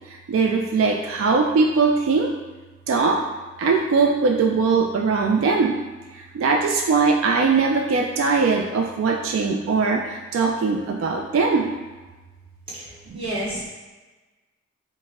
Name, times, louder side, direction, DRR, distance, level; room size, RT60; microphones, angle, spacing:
voice 1, 0.1-2.3 2.9-3.2 3.6-5.8 6.1-11.7 13.1-13.2, right 4 dB, 80° right, 2 dB, 0.3 m, -21 dB
voice 2, 12.7-13.7, right 1 dB, 25° right, -11 dB, 1.4 m, -31 dB
4.5 x 2.1 x 3.5 m, 1.2 s
head